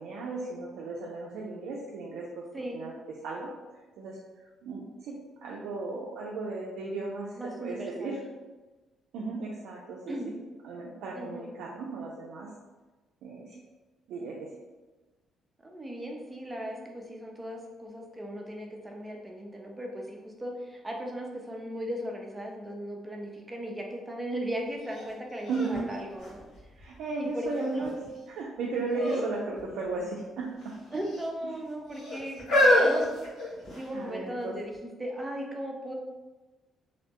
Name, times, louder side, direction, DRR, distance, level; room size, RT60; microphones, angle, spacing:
voice 1, 0.0-2.4 2.7-3.0 3.2-3.5 4.0-4.2 4.6-5.2 5.4-8.2 9.1-10.1 10.6-12.5 13.2-13.6 14.1-14.5 25.5-25.8 26.8-27.9 28.4-30.7 33.9-34.5, right 3 dB, 85° right, -3 dB, 0.3 m, -35 dB
voice 2, 7.4-8.2 10.1-10.3 11.1-11.5 15.6-26.4 27.2-27.9 29.0-29.2 30.9-33.1 33.8-34.7 35.0-35.9, equal, 15° right, 0 dB, 0.5 m, -37 dB
sound 1, 24.9-25.0 25.5-27.0 27.6-28.1 28.9-29.3 29.6-29.7 30.6-31.2 31.9-34.0 34.7-34.8, left 1 dB, 85° left, 0.9 m, -27 dB
2.6 x 2.1 x 2.8 m, 1.2 s
cardioid pair, 90°, 0 cm